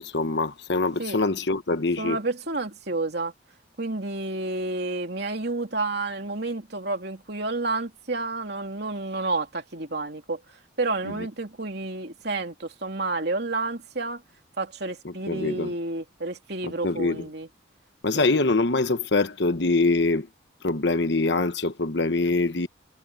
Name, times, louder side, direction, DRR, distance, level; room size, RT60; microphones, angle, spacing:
voice 1, 0.0-2.2 15.0-15.7 16.6-17.2 18.0-20.3 20.6-22.7, left 3 dB, 60° left, 1.1 m, -24 dB
voice 2, 2.0-3.3 3.8-10.4 10.8-14.2 14.6-17.5 18.1-18.3, right 3 dB, 55° right, 3.2 m, -30 dB
head